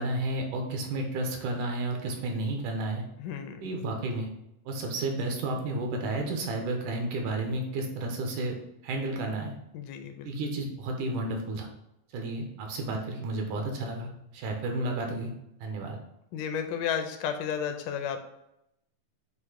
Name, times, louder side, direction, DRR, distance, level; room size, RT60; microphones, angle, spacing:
voice 1, 0.0-3.0 3.6-4.3 4.7-8.6 8.8-9.5 10.2-11.7 12.1-15.3 15.6-16.0, right 2 dB, 75° right, 2 dB, 2.5 m, -32 dB
voice 2, 3.2-3.6 9.7-10.3 16.3-18.2, left 8 dB, 80° left, 7 dB, 2.1 m, -32 dB
8.1 x 2.8 x 4.8 m, 0.82 s
omnidirectional pair, 3.8 m